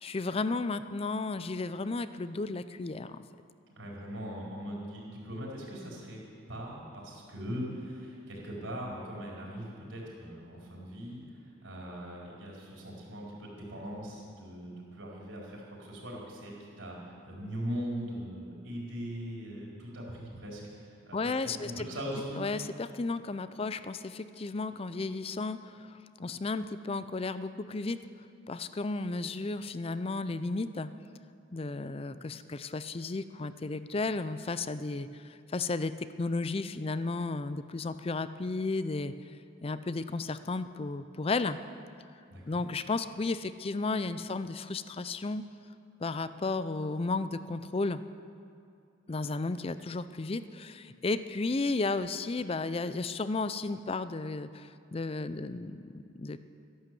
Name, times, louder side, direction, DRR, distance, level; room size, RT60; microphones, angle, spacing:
voice 1, 0.0-3.2 21.1-21.9 22.3-28.0 28.5-30.9 31.5-39.1 39.6-41.6 42.5-45.4 46.0-48.0 49.1-56.4, left 3 dB, 30° left, 13 dB, 0.4 m, -33 dB
voice 2, 3.8-6.2 6.5-11.2 11.6-21.3 21.6-22.4 42.3-42.6, equal, 90° right, -3 dB, 4.3 m, -40 dB
12.5 x 11.5 x 7.7 m, 2.5 s
head